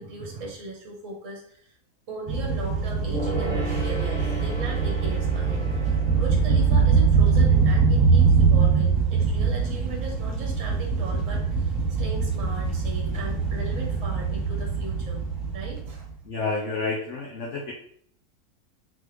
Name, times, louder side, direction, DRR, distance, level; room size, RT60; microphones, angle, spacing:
voice 1, 0.0-1.8 2.1-15.2 15.5-16.1, right 2 dB, 60° right, 0 dB, 1.3 m, -38 dB
sound 1, 2.3-16.1, right 5 dB, 45° right, 1.1 m, -23 dB
Gong, 3.1-9.0 9.3-9.4, equal, 5° left, 0.9 m, -37 dB
voice 2, 16.2-17.7, left 3 dB, 60° left, 0 dB, 0.8 m, -29 dB
3.7 x 3.3 x 3.2 m, 0.62 s
omnidirectional pair, 1.6 m